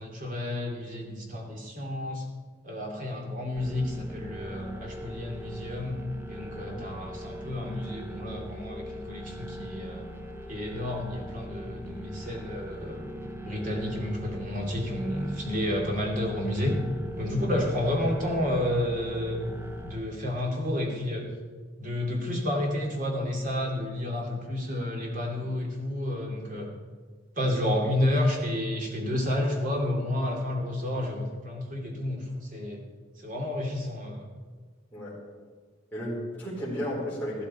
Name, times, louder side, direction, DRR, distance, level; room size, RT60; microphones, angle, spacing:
voice 1, 0.0-2.2 2.6-6.0 6.3-10.0 10.5-16.7 17.2-19.6 19.8-21.2 21.8-26.7 27.4-32.8 33.2-34.3, left 1 dB, 45° right, 0 dB, 2.6 m, -30 dB
sound 1, 3.6-20.0, equal, 15° right, 0.8 m, -40 dB
voice 2, 6.5-6.9 17.3-17.6 27.6-27.7 34.9-35.2 35.9-37.5, equal, 10° left, -9 dB, 3.9 m, -34 dB
13.5 x 12.5 x 4.3 m, 1.5 s
head